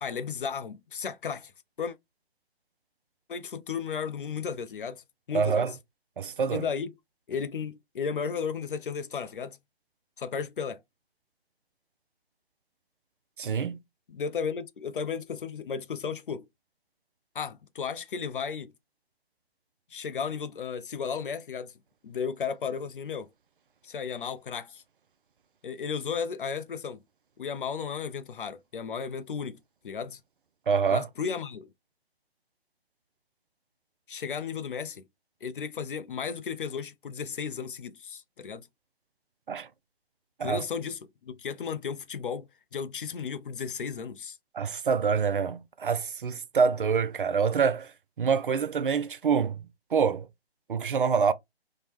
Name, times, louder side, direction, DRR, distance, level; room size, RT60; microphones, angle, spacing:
voice 1, 0.0-1.5 1.8-2.0 3.3-5.0 5.3-5.8 6.5-6.9 7.3-9.6 10.2-10.8 14.1-16.4 17.3-18.7 19.9-21.7 22.0-23.3 23.8-24.8 25.6-27.0 27.4-29.6 29.8-30.2 30.9-31.7 34.1-35.0 35.4-38.7 40.4-44.4, left 6 dB, 55° left, 0.5 m, -34 dB
voice 2, 5.3-5.7 6.2-6.7 13.4-13.8 30.7-31.1 39.5-39.7 40.4-40.6 44.5-47.9 48.2-49.6 49.9-50.3 50.7-51.3, right 6 dB, 55° right, 0.5 m, -26 dB
3.6 x 2.1 x 3.0 m
figure-of-eight pair, 145°, 32 cm